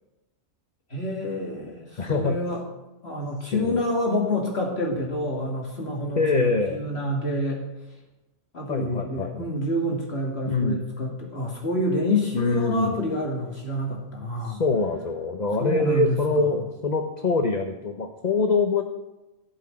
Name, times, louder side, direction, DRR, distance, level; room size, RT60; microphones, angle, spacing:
voice 1, 0.9-2.6 3.0-7.7 8.5-14.6 15.6-16.5, left 1 dB, 55° left, -1 dB, 2.4 m, -28 dB
voice 2, 2.0-2.4 3.5-3.8 6.2-6.8 8.7-9.3 10.4-10.8 12.3-12.9 14.4-18.8, left 3 dB, 40° left, 5 dB, 1.0 m, -24 dB
15.5 x 6.1 x 8.7 m, 1.0 s
omnidirectional pair, 1.3 m